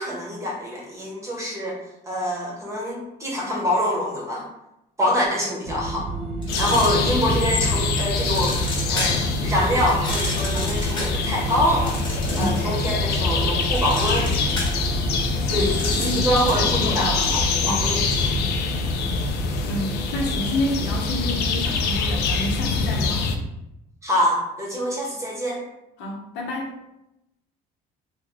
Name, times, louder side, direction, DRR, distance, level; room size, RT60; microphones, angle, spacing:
voice 1, 0.0-1.8 2.1-4.5 5.0-6.1 6.6-8.6 8.9-12.0 12.4-14.3 15.5-15.7 16.2-18.4 24.0-25.6, equal, 15° right, -2 dB, 0.8 m, -25 dB
sound 1, 5.7-20.4, right 3 dB, 35° right, 0.4 m, -31 dB
sound 2, 6.4-7.5 8.0-9.3 9.9-12.8 13.1-16.7, left 2 dB, 25° left, 1.0 m, -32 dB
sound 3, 6.5-23.4, left 4 dB, 65° left, 0.4 m, -24 dB
voice 2, 15.5-17.4 17.6-17.9 19.2-19.3 19.6-23.3 26.0-26.7, left 1 dB, 80° left, -1 dB, 0.8 m, -29 dB
3.0 x 2.2 x 3.4 m, 0.87 s
cardioid pair, 140°, 18 cm